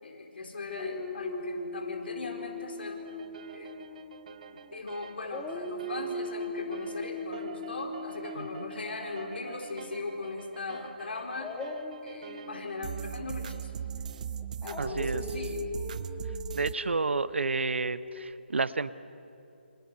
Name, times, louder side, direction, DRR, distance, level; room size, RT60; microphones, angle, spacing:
voice 1, 0.0-3.0 3.5-3.7 4.7-11.7 12.0-13.7 14.6-15.7, left 3 dB, 60° left, 2 dB, 4.2 m, -39 dB
Dog, 0.7-4.8 5.2-10.2 11.3-18.3, left 2 dB, 10° left, 1.5 m, -40 dB
sound 1, 3.1-16.7, right 8 dB, 40° right, 0.7 m, -42 dB
voice 2, 8.3-8.6 14.8-15.2 16.5-18.9, right 4 dB, 75° right, 16 dB, 0.9 m, -30 dB
28.5 x 27.0 x 5.7 m, 2.7 s
figure-of-eight pair, 155°, 6 cm